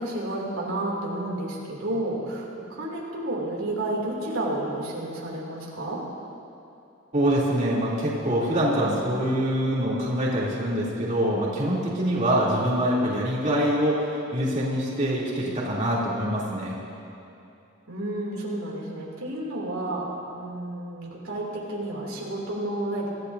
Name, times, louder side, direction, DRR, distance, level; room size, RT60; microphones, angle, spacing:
voice 1, 0.0-6.0 8.8-9.0 12.3-12.5 15.4-15.5 17.9-21.4 21.7-23.1, right 1 dB, 85° right, -4 dB, 3.0 m, -31 dB
voice 2, 7.1-16.8, equal, 35° right, -7 dB, 3.2 m, -24 dB
25.5 x 14.5 x 2.8 m, 2.7 s
head